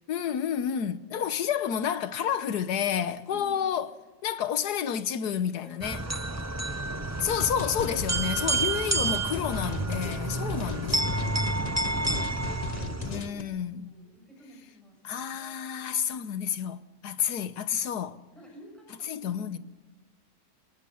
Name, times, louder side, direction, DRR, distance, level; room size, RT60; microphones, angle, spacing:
voice 1, 0.1-3.9 4.2-6.0 7.2-11.4 13.0-13.9 15.0-18.2 19.1-19.6, left 8 dB, 90° left, 1.5 m, -30 dB
voice 2, 3.3-3.7 5.5-7.6 8.3-9.6 10.8-13.6 13.8-15.6 15.8-16.3 17.2-17.6 18.3-19.6, equal, ahead, 7.9 m, -52 dB
sound 1, 5.8-13.3, right 2 dB, 15° right, 0.6 m, -30 dB
sound 2, 7.4-13.4, left 5 dB, 35° left, 0.8 m, -37 dB
27.5 x 19.0 x 5.5 m
omnidirectional pair, 1.7 m